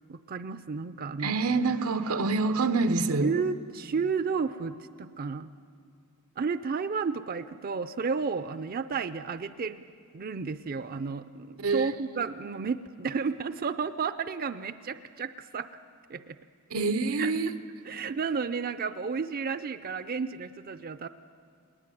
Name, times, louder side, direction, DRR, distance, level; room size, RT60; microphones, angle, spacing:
voice 1, 0.1-1.3 3.2-5.5 6.4-9.8 10.1-15.7 16.1-16.4 17.2-17.5 17.8-21.1, right 5 dB, 45° right, 0.5 m, -32 dB
voice 2, 1.2-3.3 11.6-11.9 16.7-17.5, right 3 dB, 90° right, 1.0 m, -26 dB
20.0 x 19.5 x 9.2 m
head